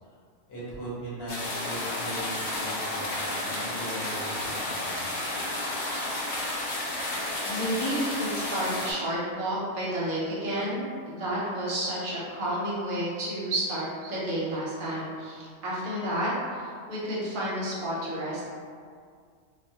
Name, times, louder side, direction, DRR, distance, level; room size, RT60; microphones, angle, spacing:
voice 1, 0.5-5.1, right 1 dB, 55° left, -8 dB, 0.9 m, -38 dB
sound 1, 1.3-8.9, left 1 dB, 80° left, 1.0 m, -32 dB
voice 2, 7.4-18.4, right 1 dB, 55° right, -6 dB, 0.6 m, -31 dB
2.4 x 2.0 x 2.7 m, 2.1 s
omnidirectional pair, 1.3 m